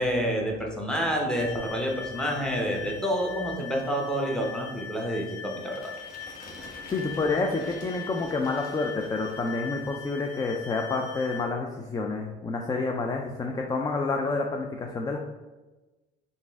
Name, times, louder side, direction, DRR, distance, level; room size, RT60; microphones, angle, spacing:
voice 1, 0.0-5.9, equal, 5° left, -1 dB, 0.8 m, -28 dB
sound 1, 1.3-11.5, left 7 dB, 80° left, 0.9 m, -41 dB
sound 2, 5.6-9.7, left 1 dB, 45° left, 1.1 m, -48 dB
voice 2, 6.9-15.2, left 3 dB, 20° left, 2 dB, 0.3 m, -29 dB
4.0 x 2.5 x 3.4 m, 1.1 s
cardioid pair, 100°, 21 cm